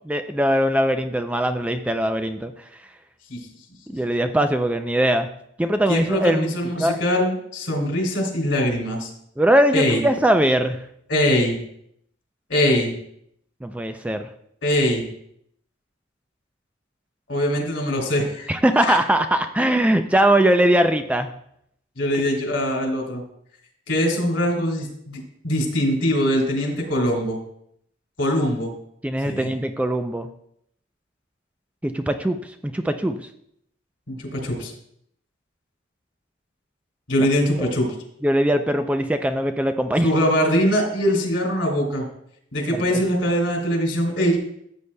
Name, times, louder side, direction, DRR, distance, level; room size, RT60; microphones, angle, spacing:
voice 1, 0.1-2.5 3.9-5.3 5.6-6.5 6.8-7.0 9.4-10.8 13.6-14.3 18.5-21.3 29.0-30.3 31.8-32.4 32.6-33.2 37.6-37.7 38.2-40.1 42.7-43.0, right 1 dB, 5° right, 7 dB, 0.3 m, -21 dB
voice 2, 5.9-9.1 9.7-10.0 11.1-11.6 12.5-12.9 14.6-15.0 17.3-18.5 18.8-19.0 22.0-23.2 23.9-27.4 28.2-28.7 29.2-29.5 34.1-34.7 37.1-37.9 40.0-42.0 42.5-44.4, equal, 75° left, 0 dB, 2.9 m, -22 dB
14.0 x 8.0 x 2.2 m, 0.72 s
head